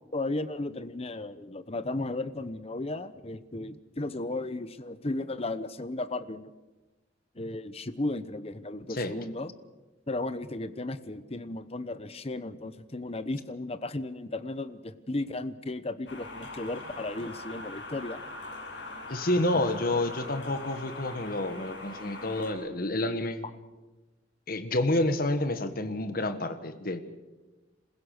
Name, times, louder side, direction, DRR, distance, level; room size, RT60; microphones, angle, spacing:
voice 1, 0.1-6.5 7.3-9.5 10.1-18.2 19.5-19.6, left 2 dB, 35° left, 13 dB, 0.9 m, -35 dB
sound 1, 16.1-22.5, left 2 dB, 90° left, 5.7 m, -42 dB
voice 2, 19.1-23.4 24.5-27.0, left 1 dB, 50° left, 9 dB, 1.6 m, -29 dB
27.5 x 16.0 x 6.7 m, 1.2 s
head